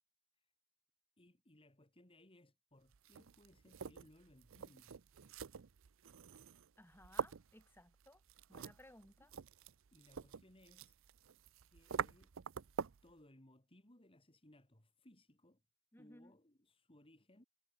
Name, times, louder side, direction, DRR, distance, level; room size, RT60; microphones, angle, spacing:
voice 1, 1.2-5.0 9.2-9.3 9.9-11.0 11.7-12.3 13.0-15.6 16.0-17.4, left 1 dB, 25° left, 3.0 m, -65 dB
sound 1, 2.9-13.1, right 6 dB, 70° right, 0.6 m, -47 dB
voice 2, 6.8-8.2 8.5-9.3 15.9-16.3, left 1 dB, 10° left, 4.4 m, -61 dB
head